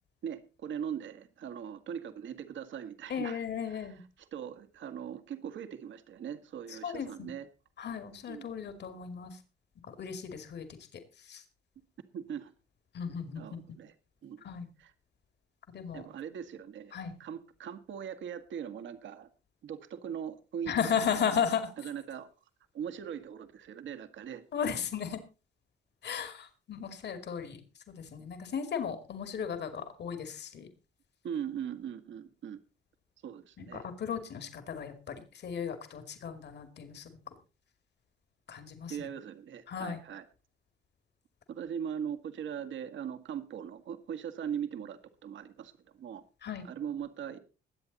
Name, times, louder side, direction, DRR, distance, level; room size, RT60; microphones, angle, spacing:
voice 1, 0.2-3.4 3.7-7.5 8.3-8.5 12.1-12.5 13.4-13.9 14.2-14.4 14.8-14.9 15.9-16.9 17.2-19.3 19.6-21.0 21.8-22.3 22.7-24.4 31.2-32.6 33.2-33.9 38.9-40.2 41.5-46.2 46.6-47.4, right 8 dB, 70° right, 10 dB, 1.8 m, -40 dB
voice 2, 3.1-4.0 6.7-7.3 7.8-9.4 10.0-10.6 11.2-11.4 12.9-13.6 14.4-14.7 15.7-16.0 16.9-17.1 20.7-21.7 24.5-25.2 26.0-27.6 28.0-30.7 33.6-37.1 38.5-39.1 39.7-40.0 46.4-46.6, left 7 dB, 60° left, 9 dB, 2.4 m, -35 dB
21.5 x 8.2 x 4.1 m, 0.33 s
cardioid pair, 90°, 20 cm